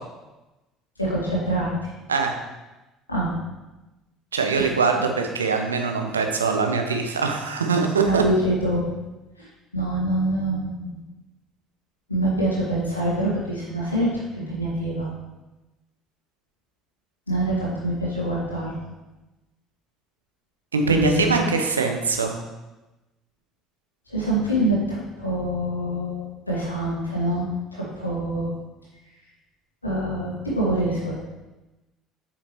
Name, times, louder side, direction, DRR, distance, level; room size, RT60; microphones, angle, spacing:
voice 1, 1.0-1.7 3.1-3.3 4.6-4.7 8.0-8.8 9.4-11.0 12.1-15.1 17.3-18.7 20.9-21.5 24.1-28.5 29.8-31.2, right 1 dB, 85° left, -6 dB, 1.9 m, -25 dB
voice 2, 4.3-8.2 20.7-22.4, right 4 dB, 80° right, 4 dB, 0.7 m, -22 dB
8.3 x 5.9 x 3.1 m, 1.1 s
figure-of-eight pair, 60°, 0 cm